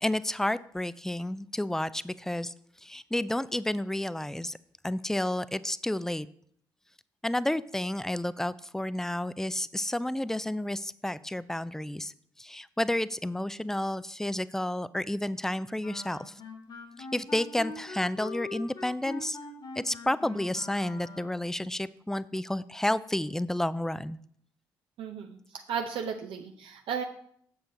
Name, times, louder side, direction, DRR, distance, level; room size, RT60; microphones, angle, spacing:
voice 1, 0.0-2.5 2.8-4.6 4.8-6.3 7.2-12.1 12.4-16.3 17.0-19.4 19.8-24.2, left 1 dB, 5° left, 17 dB, 0.4 m, -31 dB
Wind instrument woodwind instrument, 15.8-21.5, left 3 dB, 45° left, 1.6 m, -42 dB
voice 2, 25.0-27.0, right 7 dB, 60° right, 4 dB, 0.7 m, -35 dB
7.5 x 7.1 x 3.9 m, 0.63 s
figure-of-eight pair, 40°, 10 cm